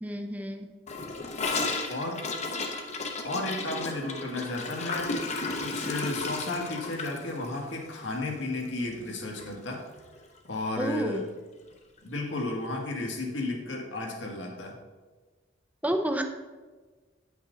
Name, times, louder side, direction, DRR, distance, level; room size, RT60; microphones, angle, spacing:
voice 1, 0.0-0.7 1.7-1.8 10.8-11.2 15.8-16.2, right 1 dB, 10° right, 5 dB, 0.5 m, -30 dB
Gurgling / Toilet flush, 0.9-9.1 9.4-9.5 9.8-10.3 10.5-10.6 10.9-11.0 12.0-12.1, left 3 dB, 35° left, 0.7 m, -34 dB
voice 2, 1.9-2.2 3.2-5.1 5.6-9.8 10.5-11.2 12.0-14.8, left 2 dB, 75° left, 0 dB, 1.5 m, -33 dB
8.8 x 5.7 x 3.8 m, 1.4 s
head